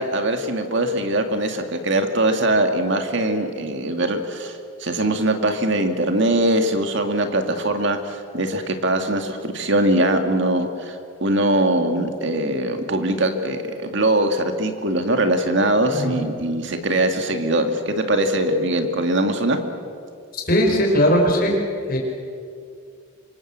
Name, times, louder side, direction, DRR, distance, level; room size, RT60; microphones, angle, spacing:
voice 1, 0.0-19.6, right 1 dB, 60° right, 6 dB, 2.1 m, -22 dB
voice 2, 15.9-16.2 20.3-21.6 21.9-22.0, equal, 45° left, 0 dB, 5.4 m, -19 dB
25.5 x 25.5 x 7.5 m, 2.4 s
head